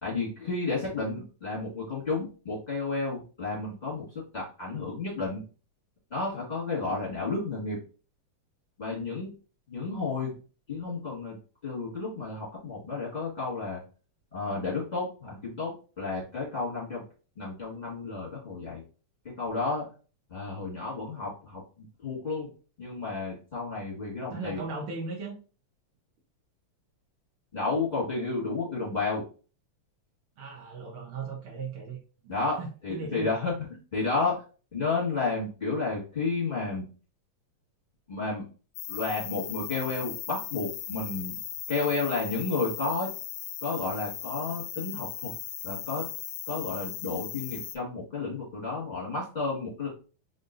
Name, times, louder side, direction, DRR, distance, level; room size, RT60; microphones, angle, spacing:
voice 1, 0.0-5.4 6.1-7.8 8.8-9.3 9.7-10.4 10.7-11.4 11.6-13.8 14.3-17.0 17.4-18.8 19.4-19.8 20.3-22.5 22.8-24.6 27.5-29.2 32.3-34.4 34.7-36.8 38.1-38.4 38.9-41.4 41.7-43.1 43.6-45.3 45.6-46.1 46.5-49.9, left 3 dB, 30° left, -7 dB, 0.8 m, -32 dB
voice 2, 24.3-25.4 30.4-32.0 32.6-33.3, right 4 dB, 85° right, -2 dB, 1.1 m, -37 dB
sound 1, 38.8-47.8, left 11 dB, 85° left, 2.0 m, -38 dB
5.2 x 2.7 x 2.5 m, 0.37 s
omnidirectional pair, 3.5 m